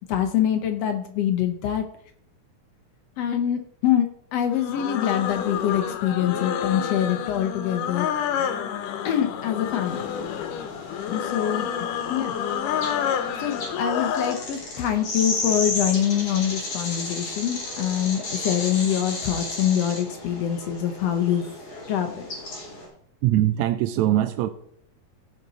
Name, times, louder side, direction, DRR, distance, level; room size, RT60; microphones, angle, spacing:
voice 1, 0.1-1.8 3.2-8.1 9.0-10.1 11.1-11.7 12.1-12.4 13.4-21.4 21.9-22.3, left 10 dB, 70° left, 1.6 m, -25 dB
sound 1, 4.5-14.5, left 8 dB, 85° left, 2.5 m, -29 dB
sound 2, 9.9-22.9, left 2 dB, 50° left, 4.1 m, -34 dB
voice 2, 23.2-24.5, right 13 dB, 80° right, 1.6 m, -21 dB
15.5 x 5.3 x 4.0 m
omnidirectional pair, 3.7 m